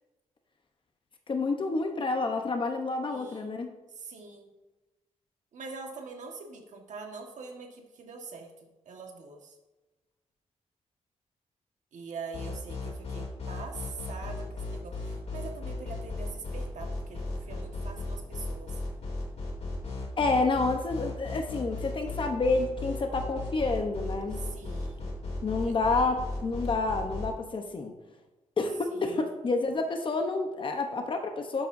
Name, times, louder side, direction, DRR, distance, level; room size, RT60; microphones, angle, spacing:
voice 1, 1.3-3.7 20.2-24.4 25.4-27.9 28.6-31.7, left 3 dB, 40° left, 4 dB, 0.9 m, -29 dB
voice 2, 3.1-3.6 3.9-4.5 5.5-9.6 11.9-18.8 24.4-25.1 25.6-25.7 28.9-29.3, right 4 dB, 80° right, 2 dB, 1.5 m, -44 dB
sound 1, 12.3-27.3, left 2 dB, 60° left, 2.8 m, -35 dB
12.0 x 7.7 x 2.6 m, 1.1 s
wide cardioid pair, 140°, 12 cm